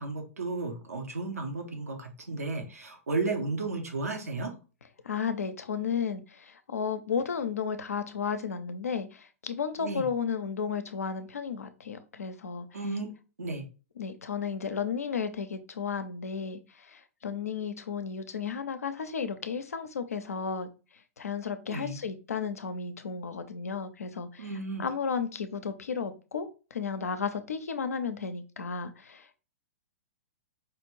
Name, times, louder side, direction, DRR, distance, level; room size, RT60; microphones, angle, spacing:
voice 1, 0.0-4.5 9.8-10.1 12.7-13.1 13.4-13.7 21.7-22.0 24.4-24.8, right 3 dB, 80° right, 4 dB, 1.0 m, -33 dB
voice 2, 5.0-12.8 14.0-20.7 21.2-24.5 24.8-29.4, left 6 dB, 75° left, 10 dB, 0.6 m, -33 dB
4.9 x 2.5 x 3.0 m, 0.33 s
figure-of-eight pair, 115°, 8 cm